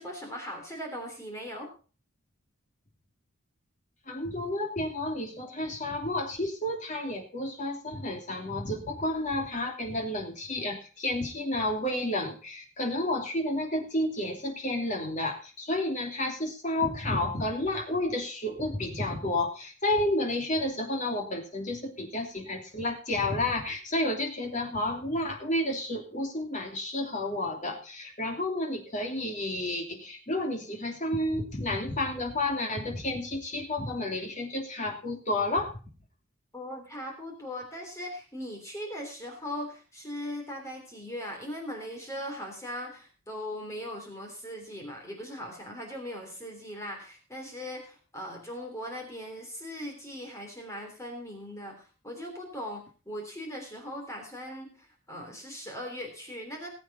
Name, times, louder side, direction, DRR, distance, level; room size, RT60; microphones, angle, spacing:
voice 1, 0.0-1.7 36.5-56.7, equal, 15° left, 1 dB, 3.4 m, -39 dB
voice 2, 4.1-35.7, left 1 dB, 35° left, 2 dB, 2.9 m, -31 dB
19.5 x 7.8 x 4.2 m, 0.36 s
head